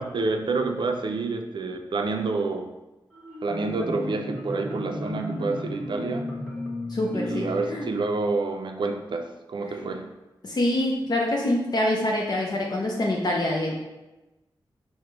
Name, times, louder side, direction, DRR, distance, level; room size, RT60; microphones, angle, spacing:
voice 1, 0.0-2.7 3.4-6.3 7.1-10.1, right 3 dB, 60° right, 5 dB, 0.4 m, -28 dB
Marimba xylophone, 3.1-8.7, left 2 dB, 5° left, 1.1 m, -34 dB
voice 2, 6.9-7.9 10.4-13.7, left 1 dB, 50° left, -2 dB, 0.6 m, -25 dB
4.9 x 2.1 x 4.6 m, 1.0 s
wide cardioid pair, 75°, 9 cm